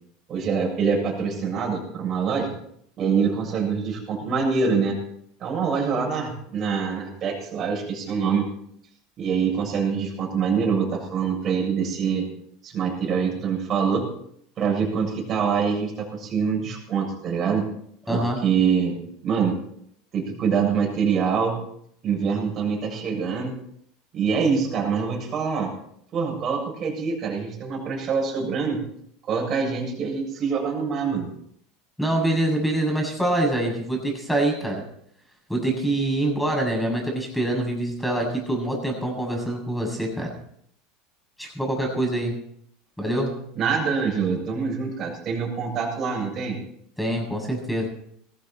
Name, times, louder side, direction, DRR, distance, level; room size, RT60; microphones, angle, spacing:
voice 1, 0.3-2.5 3.0-5.0 5.4-8.5 9.2-12.3 12.6-14.1 14.6-17.7 18.1-19.5 20.1-21.6 22.0-23.6 24.1-25.7 26.1-28.8 29.3-31.3 43.6-46.6, right 6 dB, 40° right, -1 dB, 7.5 m, -25 dB
voice 2, 18.1-18.4 32.0-34.8 35.5-40.3 41.4-42.4 43.0-43.3 47.0-47.9, right 1 dB, 5° left, 1 dB, 8.0 m, -25 dB
19.0 x 15.0 x 4.5 m, 0.70 s
hypercardioid pair, 80°, 0 cm